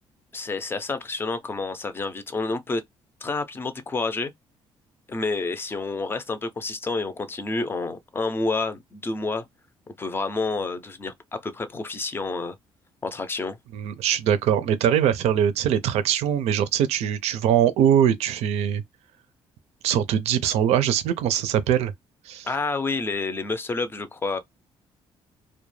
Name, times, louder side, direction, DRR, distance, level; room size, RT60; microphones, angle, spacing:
voice 1, 0.3-2.8 3.2-4.3 5.1-9.4 10.0-12.6 13.0-13.6 22.4-24.4, left 3 dB, 20° left, 0.4 m, -29 dB
voice 2, 13.7-18.8 19.8-21.9 22.3-22.5, right 9 dB, 85° right, 0.5 m, -22 dB
2.3 x 2.1 x 3.1 m
cardioid pair, 130°, 11 cm